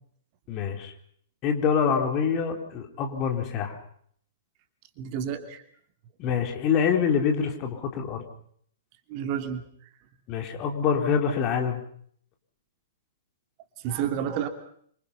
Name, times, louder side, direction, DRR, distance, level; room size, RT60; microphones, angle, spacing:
voice 1, 0.5-0.9 1.4-3.8 6.2-8.2 10.3-11.8, left 6 dB, 30° left, 4 dB, 4.1 m, -25 dB
voice 2, 5.0-5.6 9.1-9.6 13.8-14.5, right 9 dB, 35° right, 7 dB, 2.8 m, -30 dB
27.5 x 26.0 x 5.8 m, 0.63 s
figure-of-eight pair, 110°, 0 cm